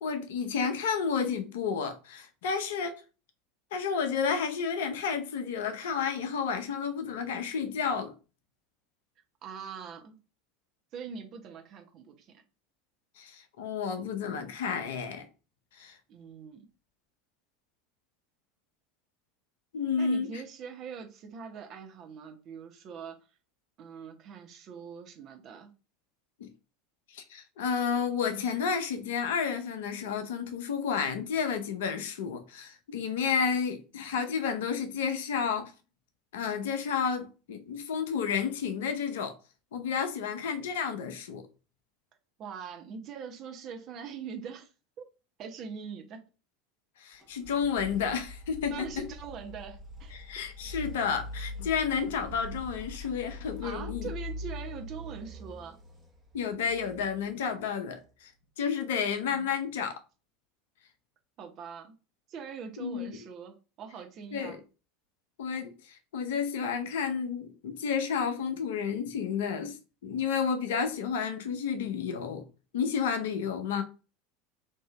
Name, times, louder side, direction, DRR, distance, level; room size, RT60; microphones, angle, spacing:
voice 1, 0.0-3.0 3.7-8.1 13.2-15.3 15.8-16.0 19.7-20.4 26.4-26.5 27.1-35.7 36.3-39.4 39.7-41.5 47.0-49.1 50.1-54.1 56.3-58.3 58.6-60.0 62.8-63.2 64.3-64.6 65.4-72.5 72.7-73.8, left 6 dB, 60° left, 0.6 m, -31 dB
voice 2, 9.4-10.2 10.9-12.3 16.1-16.7 20.0-23.2 23.8-25.7 42.4-44.7 45.4-46.2 48.7-50.1 53.6-55.8 59.3-59.5 61.4-61.9 62.3-64.6, right 6 dB, 40° right, 0.8 m, -42 dB
sound 1, 47.2-58.0, left 2 dB, 15° right, 1.0 m, -43 dB
3.6 x 2.7 x 3.1 m
figure-of-eight pair, 75°, 0 cm